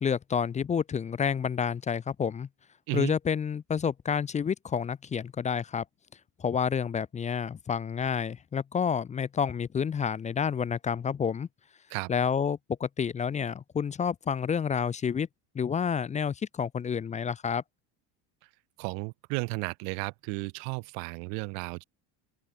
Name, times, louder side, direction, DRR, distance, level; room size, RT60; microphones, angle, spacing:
voice 1, 0.0-2.5 2.9-5.8 6.4-11.5 12.1-15.3 15.5-17.6, left 7 dB, 20° left, 0.8 m, -29 dB
voice 2, 18.8-21.8, right 37 dB, 60° right, 0.7 m, -34 dB
open air
cardioid pair, 145°, 39 cm